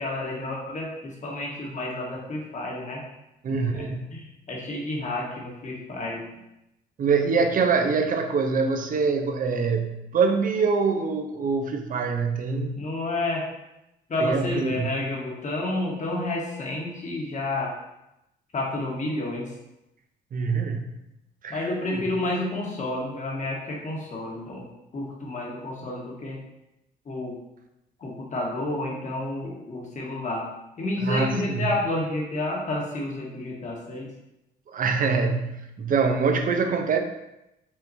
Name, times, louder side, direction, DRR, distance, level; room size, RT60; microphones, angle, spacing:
voice 1, 0.0-3.0 3.5-3.9 4.1-6.2 12.7-13.5 14.1-17.7 18.5-19.5 21.5-24.7 24.9-26.4 27.0-27.3 28.0-30.5 30.8-34.1, left 2 dB, 40° left, -2 dB, 1.4 m, -30 dB
voice 2, 3.4-4.0 7.0-12.8 14.2-14.9 20.3-20.9 21.4-22.0 31.0-31.7 34.7-37.0, right 4 dB, 45° right, 5 dB, 0.6 m, -24 dB
5.5 x 2.9 x 2.7 m, 0.88 s
supercardioid pair, 75°, 19 cm